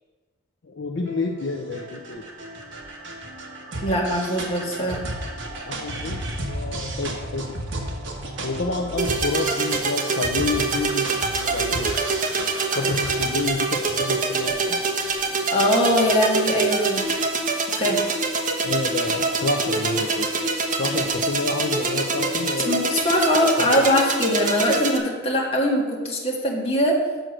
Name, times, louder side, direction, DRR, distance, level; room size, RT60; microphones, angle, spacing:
voice 1, 0.6-2.2 5.7-6.2 6.5-7.5 8.4-11.9 12.4-12.5 12.7-14.8 18.6-22.9 23.6-23.9, left 3 dB, 60° left, 2 dB, 0.6 m, -29 dB
sound 1, 1.0-16.6, right 1 dB, 65° right, 1.4 m, -34 dB
voice 2, 3.8-5.0 15.5-17.1 17.8-18.0 22.7-27.0, equal, 30° left, -2 dB, 1.8 m, -21 dB
sound 2, 9.0-25.0, right 3 dB, 40° right, 1.2 m, -25 dB
7.6 x 6.3 x 6.5 m, 1.4 s
head